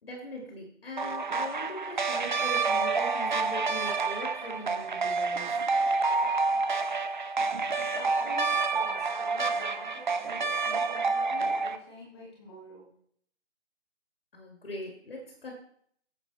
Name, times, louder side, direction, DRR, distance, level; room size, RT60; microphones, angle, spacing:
voice 1, 0.0-5.6 14.3-15.5, equal, 50° left, 0 dB, 2.7 m, -41 dB
sound 1, 1.0-11.8, right 4 dB, 40° right, 0.8 m, -28 dB
voice 2, 7.4-12.9, left 1 dB, 20° left, -3 dB, 2.1 m, -47 dB
9.6 x 7.7 x 4.2 m, 0.64 s
figure-of-eight pair, 160°, 36 cm